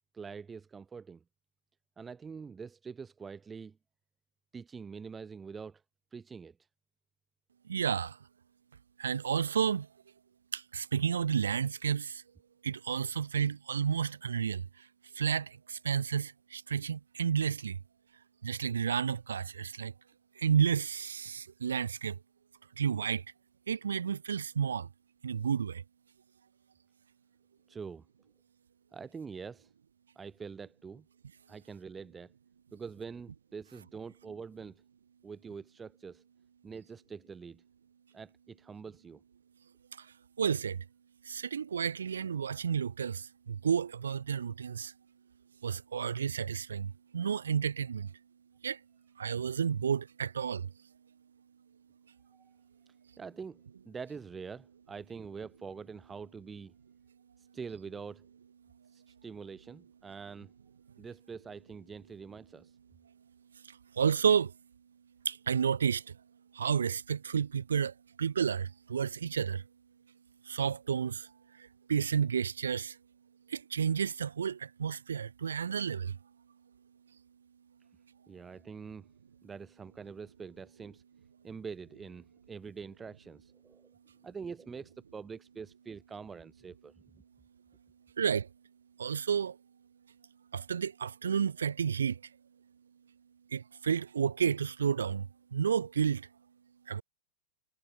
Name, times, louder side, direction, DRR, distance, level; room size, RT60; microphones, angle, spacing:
voice 1, 0.1-1.2 2.0-3.8 4.5-5.8 6.1-6.6 27.7-28.0 28.9-29.7 30.1-31.0 31.5-32.3 32.7-34.8 35.2-36.2 36.6-37.6 38.1-39.2 52.3-52.4 53.2-56.7 57.4-58.2 58.9-60.5 61.0-62.8 78.3-79.1 79.4-81.0 81.4-83.9 84.2-86.9, right 5 dB, 15° right, 3.2 m, -45 dB
voice 2, 7.7-8.2 9.0-9.9 10.5-12.2 12.6-14.9 15.1-17.8 18.4-19.9 20.4-22.2 22.8-23.2 23.7-24.9 25.2-25.8 40.0-40.1 40.4-40.8 41.2-44.9 45.6-48.1 48.6-48.8 49.2-50.7 63.6-64.5 65.3-66.2 66.5-69.7 70.4-73.0 73.5-76.2 88.2-88.5 89.0-89.6 90.5-92.2 93.5-96.3 96.9-97.0, right 7 dB, 90° right, 0.4 m, -31 dB
hypercardioid pair, 115°, 0 cm